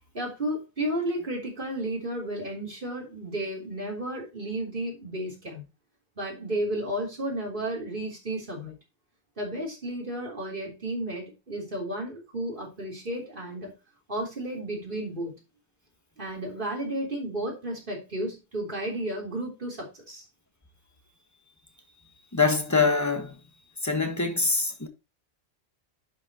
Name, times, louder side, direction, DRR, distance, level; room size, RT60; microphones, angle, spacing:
voice 1, 0.1-5.6 6.2-8.7 9.4-13.7 14.1-15.3 16.2-20.2, right 1 dB, 50° right, 3.7 m, -33 dB
voice 2, 22.3-23.4 23.8-24.9, left 4 dB, 15° left, 1.4 m, -24 dB
11.0 x 5.9 x 2.9 m
omnidirectional pair, 1.1 m